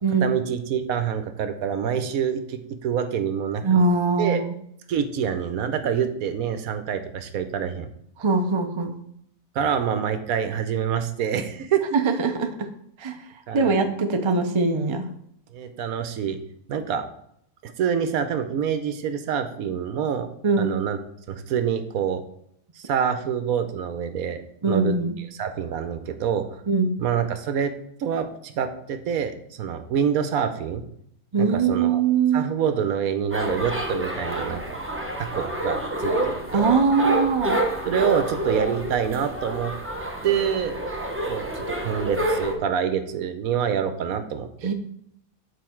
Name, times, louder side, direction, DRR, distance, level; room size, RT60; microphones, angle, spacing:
voice 1, 0.2-3.6 4.2-4.4 4.9-7.9 9.5-12.0 13.5-13.8 15.5-16.4 16.7-17.1 17.6-20.3 20.6-21.0 21.3-22.2 22.8-24.9 25.4-26.6 27.0-27.7 28.0-30.8 31.4-32.0 32.3-34.8 35.2-36.6 37.8-39.7 40.2-40.8 41.2-44.7, right 8 dB, 75° right, 9 dB, 1.2 m, -26 dB
voice 2, 3.6-4.6 8.2-9.0 11.9-12.7 13.0-13.2 13.5-15.1 20.4-20.8 24.6-25.1 26.7-26.9 31.3-32.4 36.5-37.6 44.6-44.7, right 4 dB, 30° right, 6 dB, 0.5 m, -22 dB
sound 1, 33.3-42.5, right 1 dB, 10° right, 0.8 m, -28 dB
8.4 x 4.8 x 4.5 m, 0.70 s
omnidirectional pair, 1.5 m